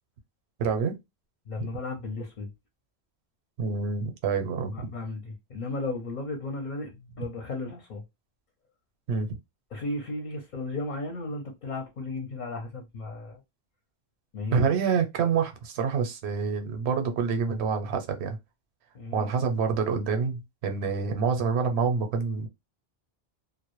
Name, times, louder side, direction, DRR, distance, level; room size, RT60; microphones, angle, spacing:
voice 1, 0.6-0.9 3.6-4.9 9.1-9.3 14.5-18.4 19.1-22.5, right 5 dB, 85° right, 0.9 m, -27 dB
voice 2, 1.5-2.5 4.7-8.0 9.7-13.4 14.3-14.7 18.9-19.3, left 2 dB, 55° left, 0.7 m, -35 dB
2.1 x 2.0 x 2.9 m
omnidirectional pair, 1.1 m